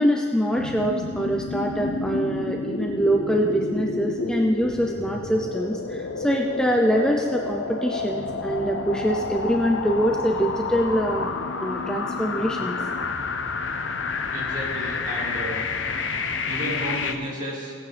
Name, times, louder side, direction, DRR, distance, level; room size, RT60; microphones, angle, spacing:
voice 1, 0.0-11.3 11.6-12.8, equal, 5° left, 1 dB, 0.6 m, -24 dB
sound 1, 0.6-17.1, left 4 dB, 90° left, 0.7 m, -29 dB
voice 2, 14.3-15.7 16.4-17.7, equal, 45° right, -4 dB, 2.7 m, -32 dB
18.0 x 9.0 x 3.4 m, 2.1 s
head